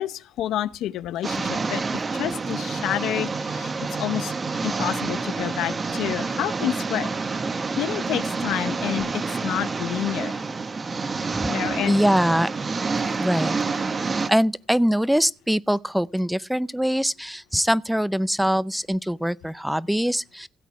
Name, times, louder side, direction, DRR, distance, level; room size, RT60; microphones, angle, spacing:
voice 1, 0.0-1.8 2.1-4.3 4.6-7.1 7.8-10.4 11.5-12.0, left 12 dB, 85° left, 0.7 m, -29 dB
sound 1, 1.2-14.3, right 4 dB, 35° right, 1.2 m, -28 dB
voice 2, 11.9-12.5 13.2-13.5 14.3-20.5, equal, ahead, 0.5 m, -23 dB
16.0 x 8.2 x 4.8 m
cardioid pair, 90°, 0 cm